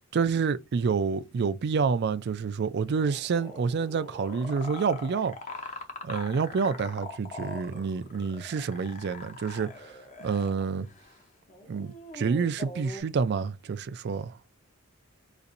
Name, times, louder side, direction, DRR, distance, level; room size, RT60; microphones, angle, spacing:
voice 1, 0.1-5.4 6.0-9.9 10.2-10.9 11.7-14.4, right 5 dB, 50° right, 0.3 m, -28 dB
sound 1, 2.7-10.6 10.9-11.2 11.5-13.0, left 3 dB, 35° left, 0.7 m, -42 dB
4.1 x 2.6 x 2.5 m
head